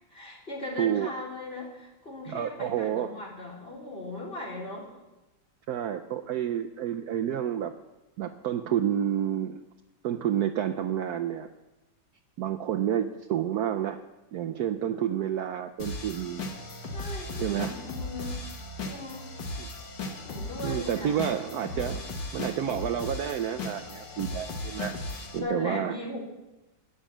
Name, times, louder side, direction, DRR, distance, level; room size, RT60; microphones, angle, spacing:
voice 1, 0.1-4.9 16.9-18.3 18.8-19.3 20.2-21.2 25.3-26.2, left 2 dB, 30° left, -4 dB, 3.7 m, -38 dB
voice 2, 0.8-1.1 2.3-3.1 5.7-7.7 8.2-9.6 10.0-11.5 12.4-14.0 14.3-16.5 17.4-17.7 19.6-19.7 20.6-22.0 22.3-24.9 25.3-26.0, right 10 dB, 70° right, 6 dB, 0.9 m, -29 dB
sound 1, 15.8-25.4, left 2 dB, 65° left, 2.2 m, -37 dB
12.0 x 10.0 x 7.3 m, 1.0 s
omnidirectional pair, 2.2 m